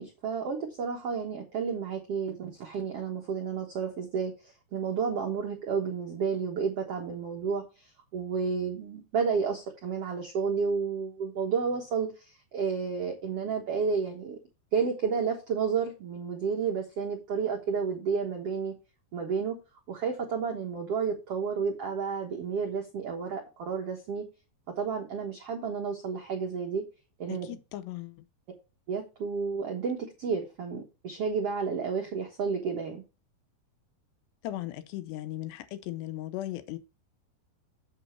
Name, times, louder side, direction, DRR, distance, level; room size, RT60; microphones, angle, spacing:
voice 1, 0.0-14.4 14.7-18.7 19.1-19.6 19.9-24.2 24.8-26.8 27.2-27.6 28.9-33.0, right 5 dB, 70° right, 1.4 m, -31 dB
voice 2, 27.3-28.2 34.4-36.8, left 14 dB, 85° left, 3.1 m, -37 dB
7.7 x 7.4 x 4.4 m
omnidirectional pair, 4.8 m